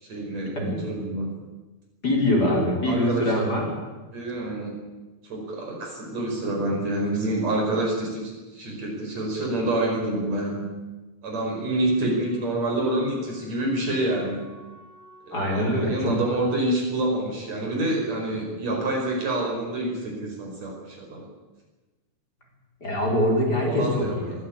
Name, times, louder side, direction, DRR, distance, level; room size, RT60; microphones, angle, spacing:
voice 1, 0.0-1.3 2.5-2.6 2.8-3.5 4.1-4.8 5.2-10.7 11.2-14.4 15.3-21.2 23.6-24.2, right 1 dB, 60° right, 0 dB, 6.2 m, -27 dB
voice 2, 2.0-3.7 15.3-16.2 22.8-24.3, left 1 dB, 30° left, -1 dB, 4.8 m, -23 dB
Wind instrument woodwind instrument, 11.5-15.8, left 1 dB, 75° left, 8.4 m, -46 dB
22.0 x 15.5 x 8.8 m, 1.2 s
omnidirectional pair, 3.5 m